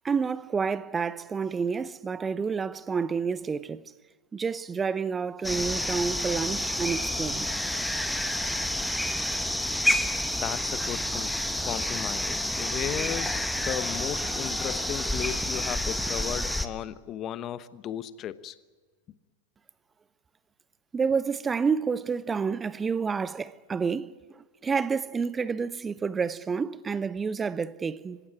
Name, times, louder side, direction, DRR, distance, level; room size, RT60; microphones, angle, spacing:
voice 1, 0.0-3.9 4.3-7.4 20.9-28.2, right 5 dB, 15° right, 0.8 m, -29 dB
sound 1, 5.4-16.7, left 1 dB, ahead, 1.3 m, -29 dB
voice 2, 10.4-11.4 11.6-18.5, left 11 dB, 30° left, 1.1 m, -35 dB
26.5 x 16.0 x 9.6 m
figure-of-eight pair, 90°, 0 cm